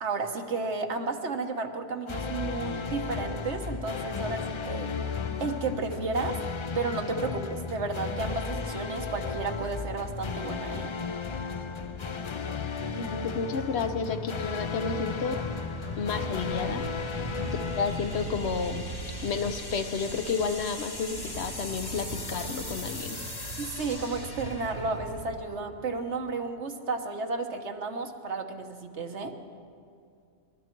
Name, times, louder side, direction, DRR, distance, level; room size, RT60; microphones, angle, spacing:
voice 1, 0.0-4.9 5.4-6.4 6.7-10.9 23.6-29.3, right 3 dB, 80° right, 5 dB, 1.4 m, -32 dB
sound 1, 2.1-19.1, left 4 dB, 40° left, 0.4 m, -34 dB
sound 2, 10.1-26.6, left 2 dB, 20° left, 1.0 m, -44 dB
voice 2, 13.0-15.4 16.0-16.8 17.1-17.2 17.5-18.9 19.2-23.2, left 5 dB, 70° left, 9 dB, 1.1 m, -31 dB
sound 3, 15.1-25.5, right 2 dB, 60° right, 1.2 m, -41 dB
25.5 x 12.5 x 4.6 m, 2.4 s
omnidirectional pair, 1.1 m